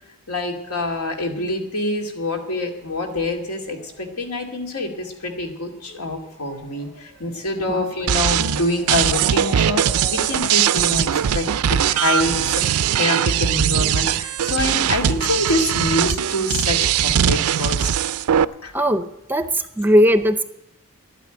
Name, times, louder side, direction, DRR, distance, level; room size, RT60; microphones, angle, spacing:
voice 1, 0.3-17.9 18.6-18.7, left 2 dB, 85° left, 3 dB, 2.4 m, -26 dB
Motor vehicle (road) / Siren, 3.7-16.7 17.0-18.2 18.8-18.9 19.2-19.3, equal, 65° left, 6.3 m, -43 dB
sound 1, 8.1-18.4, right 9 dB, 85° right, 0.4 m, -20 dB
voice 2, 18.7-20.4, equal, 10° right, 11 dB, 0.5 m, -18 dB
12.0 x 9.2 x 9.0 m, 0.83 s
head